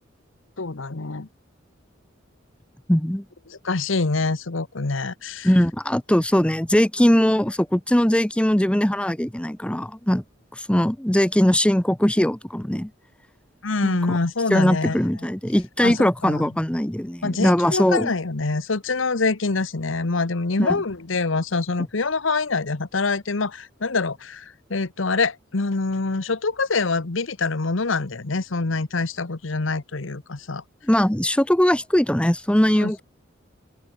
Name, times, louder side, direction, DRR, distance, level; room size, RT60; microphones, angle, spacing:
voice 1, 0.6-1.3 3.5-5.5 13.6-15.0 15.8-16.5 17.2-30.6 32.8-33.0, left 3 dB, 80° left, 1.1 m, -25 dB
voice 2, 2.9-3.2 5.4-10.2 10.5-12.9 13.8-14.2 14.5-18.1 20.6-20.8 30.9-33.0, equal, 5° left, 0.8 m, -20 dB
open air
head